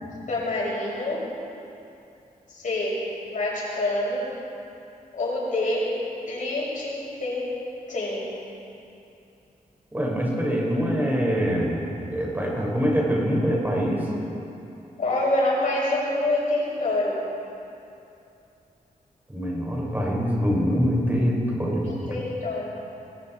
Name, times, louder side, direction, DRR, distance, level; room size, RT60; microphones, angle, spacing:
voice 1, 0.3-1.3 2.5-4.3 5.1-6.0 6.2-7.5 7.9-8.4 15.0-17.2 21.8-22.7, left 2 dB, 65° left, -5 dB, 7.1 m, -26 dB
voice 2, 9.9-14.1 19.3-22.0, equal, 15° right, -3 dB, 5.1 m, -24 dB
29.5 x 21.0 x 4.4 m, 2.8 s
wide cardioid pair, 125°, 14 cm